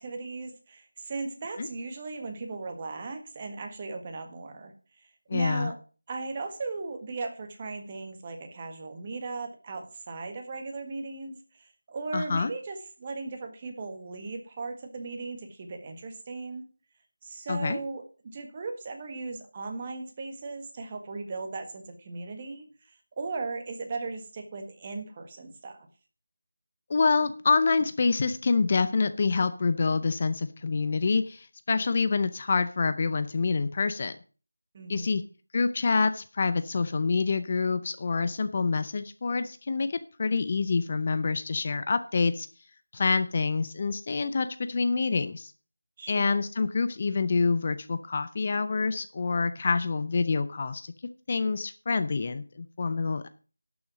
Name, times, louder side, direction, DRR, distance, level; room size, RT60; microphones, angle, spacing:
voice 1, 0.0-5.8 6.1-16.7 17.2-25.8 34.7-35.2 46.0-46.4, right 3 dB, 25° right, 5 dB, 1.6 m, -37 dB
voice 2, 5.3-5.7 12.1-12.5 17.5-17.8 26.9-34.2 34.9-35.2 35.5-42.5 42.9-45.5 46.1-50.9 51.3-53.3, left 4 dB, 30° left, 11 dB, 0.6 m, -27 dB
11.5 x 7.0 x 6.1 m, 0.37 s
figure-of-eight pair, 170°, 0 cm